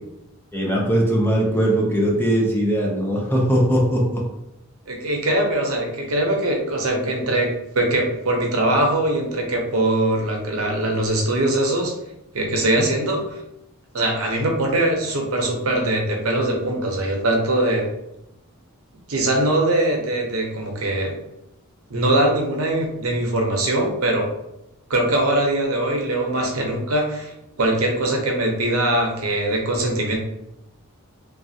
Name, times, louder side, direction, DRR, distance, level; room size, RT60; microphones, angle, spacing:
voice 1, 0.5-4.2 12.8-12.9, right 1 dB, 10° left, -2 dB, 0.5 m, -20 dB
voice 2, 4.9-11.9 12.3-13.4 13.9-17.9 19.1-21.2 21.9-24.3 24.9-30.2, right 1 dB, 75° right, 1 dB, 0.7 m, -22 dB
3.2 x 2.3 x 2.7 m, 0.84 s
head